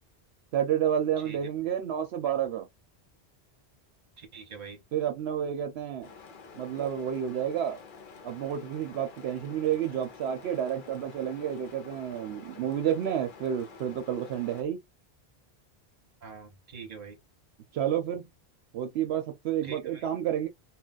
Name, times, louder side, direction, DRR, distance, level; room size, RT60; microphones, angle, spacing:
voice 1, 0.5-2.7 4.9-6.1 6.6-7.8 8.2-14.8 17.7-18.3 18.7-20.5, right 9 dB, 75° right, 0.8 m, -30 dB
voice 2, 4.2-4.8 16.2-17.2 19.6-20.1, right 5 dB, 40° right, 0.9 m, -44 dB
sound 1, 6.0-14.6, left 5 dB, 55° left, 0.7 m, -49 dB
2.3 x 2.2 x 3.9 m
omnidirectional pair, 1.1 m